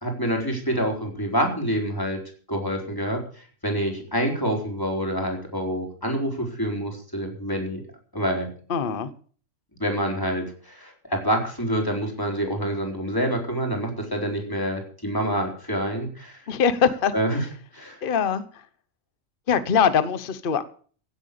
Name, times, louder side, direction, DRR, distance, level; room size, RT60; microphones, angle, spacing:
voice 1, 0.0-2.2 2.5-7.8 8.1-8.5 9.8-16.4 17.1-17.4 17.7-18.0, equal, 15° left, 1 dB, 4.1 m, -27 dB
voice 2, 8.7-9.1 16.5-17.1 18.0-18.6 19.5-20.6, left 7 dB, 45° left, 13 dB, 1.1 m, -22 dB
17.0 x 8.1 x 6.7 m, 0.43 s
omnidirectional pair, 1.4 m